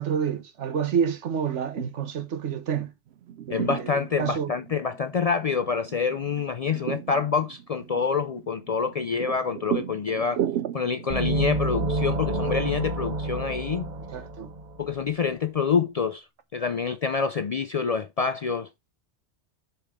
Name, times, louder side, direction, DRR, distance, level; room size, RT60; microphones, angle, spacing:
voice 1, 0.0-2.9 3.5-4.5 14.1-14.5, right 7 dB, 85° right, 1.3 m, -28 dB
sound 1, 3.1-12.9, right 10 dB, 70° right, 0.8 m, -36 dB
voice 2, 3.5-10.4 10.7-13.9 14.8-16.3 16.5-18.7, left 5 dB, 65° left, 0.3 m, -27 dB
sound 2, 11.1-14.9, right 2 dB, 40° right, 1.2 m, -28 dB
6.8 x 5.8 x 3.5 m
omnidirectional pair, 1.2 m